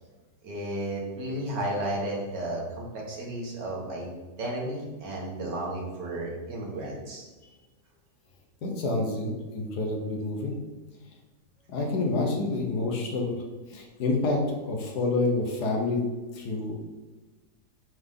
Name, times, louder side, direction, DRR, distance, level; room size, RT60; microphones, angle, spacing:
voice 1, 0.4-4.1 4.4-7.3, right 1 dB, 85° right, -2 dB, 2.2 m, -33 dB
voice 2, 8.6-10.5 11.7-13.4 13.7-16.0 16.3-16.7, left 2 dB, 70° left, 2 dB, 1.7 m, -28 dB
8.4 x 4.0 x 3.7 m, 1.2 s
omnidirectional pair, 1.8 m